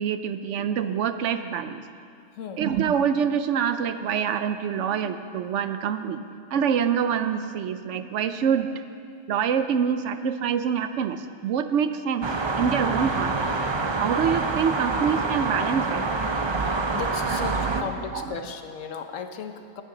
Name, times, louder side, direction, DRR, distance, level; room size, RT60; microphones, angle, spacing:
voice 1, 0.0-1.8 2.6-6.2 6.5-8.8 9.3-12.3 12.6-13.4 13.9-16.0 16.9-17.0 17.3-18.4, right 7 dB, 75° right, 10 dB, 0.9 m, -26 dB
sound 1, 12.2-17.8, right 3 dB, 35° right, 0.4 m, -26 dB
voice 2, 16.6-19.8, left 6 dB, 80° left, 6 dB, 1.2 m, -36 dB
18.5 x 9.2 x 3.8 m, 2.3 s
omnidirectional pair, 1.3 m